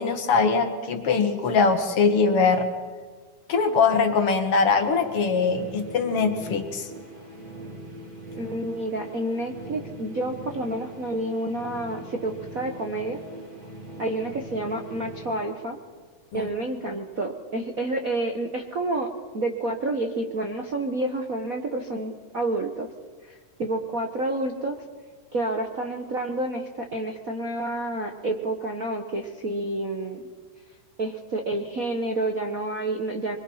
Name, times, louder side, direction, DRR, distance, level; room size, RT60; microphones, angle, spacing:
voice 1, 0.0-2.7 3.5-6.9 16.3-16.5, left 4 dB, 50° left, 6 dB, 2.3 m, -22 dB
sound 1, 4.1-16.1, right 1 dB, 25° right, 4.7 m, -41 dB
voice 2, 8.4-13.2 14.0-15.8 16.3-22.9 23.3-24.8 25.3-30.2 31.0-33.4, right 2 dB, 60° right, 3 dB, 0.8 m, -29 dB
25.0 x 22.5 x 5.7 m, 1.5 s
omnidirectional pair, 3.7 m